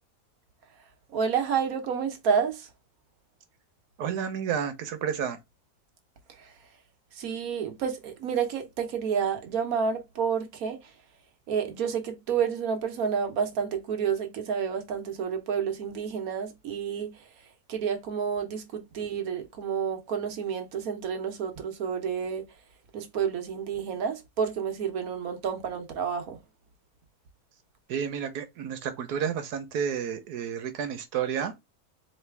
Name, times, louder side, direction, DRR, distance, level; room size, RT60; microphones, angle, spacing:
voice 1, 0.8-2.7 6.3-6.7 7.1-11.0 11.5-22.6 22.9-26.4, right 7 dB, 65° right, 1.3 m, -30 dB
voice 2, 4.0-5.4 27.9-31.5, right 8 dB, 85° right, 1.4 m, -31 dB
4.2 x 3.2 x 3.4 m
omnidirectional pair, 1.6 m